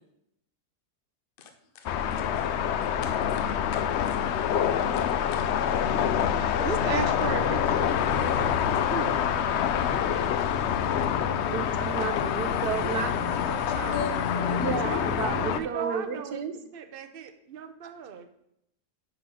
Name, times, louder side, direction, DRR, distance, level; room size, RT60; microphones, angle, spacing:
voice 1, 1.4-1.9 2.2-2.3 3.0-3.5 3.7-4.2 5.0-5.5 13.9-14.7, left 5 dB, 45° left, 6 dB, 0.8 m, -40 dB
sound 1, 1.9-15.6, left 8 dB, 80° left, 0.6 m, -26 dB
voice 2, 6.6-9.2 14.5-16.4 16.7-18.3, right 7 dB, 45° right, 9 dB, 0.8 m, -35 dB
voice 3, 11.5-14.1 14.3-16.5, right 6 dB, 75° right, 8 dB, 1.5 m, -33 dB
10.0 x 4.0 x 5.7 m, 0.77 s
omnidirectional pair, 1.7 m